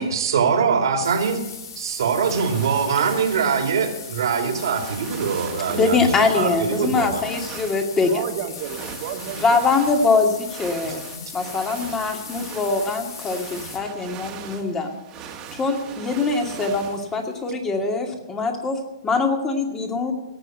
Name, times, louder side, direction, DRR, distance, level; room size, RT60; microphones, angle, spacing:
voice 1, 0.0-1.4 1.8-7.2, right 6 dB, 70° right, 4 dB, 2.8 m, -23 dB
sound 1, 1.0-13.8, left 6 dB, 60° left, 2.9 m, -39 dB
sound 2, 2.2-17.5, right 8 dB, 30° right, 2.0 m, -40 dB
voice 2, 5.7-8.2 9.4-11.0 11.3-15.0 15.5-20.1, left 4 dB, 15° left, 4 dB, 2.3 m, -23 dB
voice 3, 7.9-9.9 11.2-11.7, right 8 dB, 50° right, 5 dB, 1.9 m, -33 dB
17.5 x 6.5 x 9.2 m, 1.0 s
hypercardioid pair, 130°, 2 cm